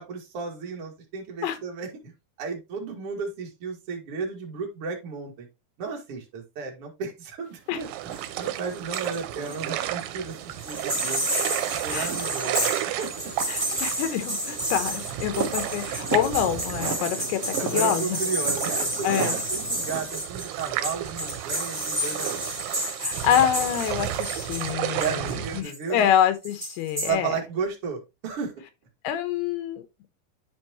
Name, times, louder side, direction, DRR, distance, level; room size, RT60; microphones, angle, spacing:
voice 1, 0.0-2.1 2.4-5.5 5.8-11.3 11.7-13.3 17.6-22.4 24.9-26.1 27.0-28.5, right 5 dB, 45° right, 2.4 m, -34 dB
sound 1, 7.5-20.1, right 6 dB, 65° right, 1.5 m, -38 dB
sound 2, 7.8-25.6, right 13 dB, 90° right, 2.7 m, -33 dB
sound 3, 8.1-9.2 9.4-10.1 10.5-26.0 26.4-27.1, right 1 dB, 10° right, 1.5 m, -31 dB
voice 2, 13.5-18.2 19.0-19.4 23.0-27.4 29.0-29.8, left 10 dB, 80° left, 3.1 m, -26 dB
10.5 x 4.5 x 3.0 m
omnidirectional pair, 4.6 m